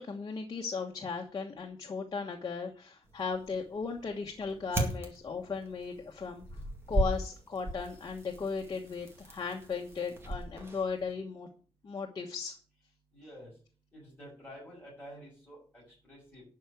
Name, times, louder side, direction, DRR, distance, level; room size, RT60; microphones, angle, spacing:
voice 1, 0.0-6.4 6.9-11.5 11.8-12.6, left 5 dB, 40° left, 1 dB, 1.2 m, -36 dB
sound 1, 3.0-11.1, right 1 dB, 25° right, 2.2 m, -38 dB
voice 2, 13.1-13.5 13.9-16.4, equal, 20° left, -6 dB, 6.5 m, -50 dB
12.0 x 4.7 x 8.1 m, 0.40 s
wide cardioid pair, 180°, 10 cm